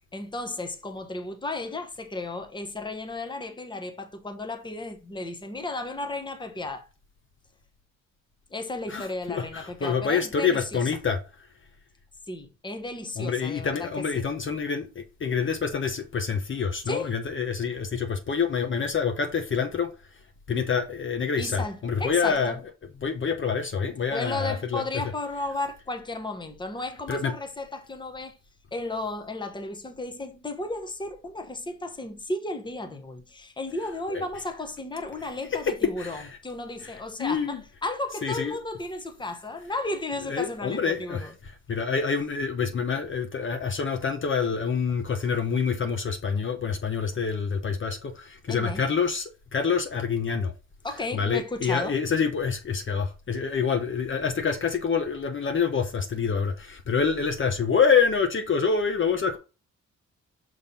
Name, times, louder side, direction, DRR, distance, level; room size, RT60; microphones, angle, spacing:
voice 1, 0.1-6.9 8.5-10.8 12.3-13.9 14.1-14.2 16.9-17.1 21.4-22.5 24.1-28.4 28.7-41.3 48.5-48.8 50.8-52.0, left 2 dB, 15° left, 1.1 m, -34 dB
voice 2, 8.9-11.5 13.2-19.9 20.5-22.6 23.0-24.8 27.1-27.3 34.1-34.3 35.6-35.7 36.0-36.3 36.8-37.6 38.2-38.6 40.3-50.5 51.1-59.4, left 6 dB, 40° left, 0.9 m, -27 dB
5.7 x 3.3 x 5.4 m
cardioid pair, 95°, 31 cm